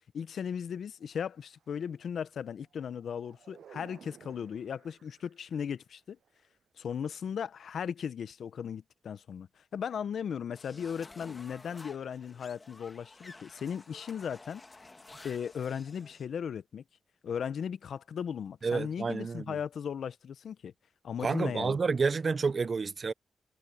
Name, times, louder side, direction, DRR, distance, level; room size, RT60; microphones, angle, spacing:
voice 1, 0.1-6.2 6.8-9.5 9.7-14.6 15.2-16.8 17.2-20.7 21.0-21.8, left 7 dB, 75° left, 0.6 m, -37 dB
sound 1, 1.0-2.0 2.6-5.7 6.2-6.5, right 9 dB, 85° right, 7.7 m, -57 dB
sound 2, 10.5-16.3, left 2 dB, 25° left, 1.4 m, -52 dB
voice 2, 18.6-19.6 21.2-23.1, right 4 dB, 45° right, 0.6 m, -29 dB
cardioid pair, 95°, 0 cm